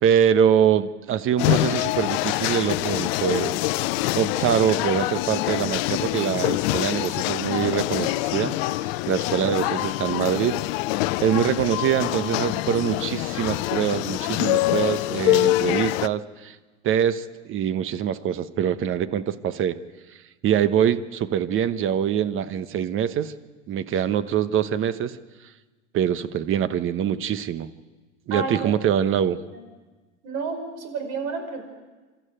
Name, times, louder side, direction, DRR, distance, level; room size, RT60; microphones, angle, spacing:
voice 1, 0.0-3.6 4.1-8.5 9.1-10.6 11.2-16.5 16.8-19.8 20.4-23.3 23.7-25.2 25.9-27.7 28.3-29.4, right 9 dB, 35° right, 13 dB, 1.1 m, -24 dB
sound 1, 1.4-16.1, left 18 dB, 55° left, 0.7 m, -25 dB
voice 2, 28.3-28.7 29.5-29.6 30.2-31.6, right 4 dB, 55° right, 6 dB, 5.4 m, -30 dB
26.0 x 13.5 x 9.0 m, 1.3 s
hypercardioid pair, 95°, 35 cm